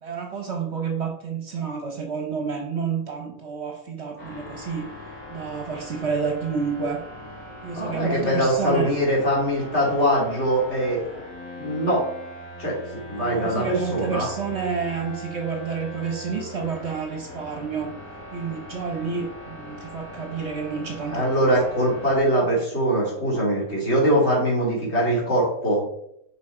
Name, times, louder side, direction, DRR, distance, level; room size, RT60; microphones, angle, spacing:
voice 1, 0.0-7.0 7.6-8.9 13.1-17.9 18.3-21.5, right 5 dB, 50° right, 2 dB, 1.2 m, -29 dB
sound 1, 4.2-22.2, equal, 75° left, 2.7 m, -40 dB
voice 2, 7.8-11.1 11.5-12.0 12.6-14.3 21.1-25.8, right 1 dB, 45° left, -4 dB, 3.0 m, -22 dB
6.3 x 5.1 x 4.4 m, 0.74 s
omnidirectional pair, 1.6 m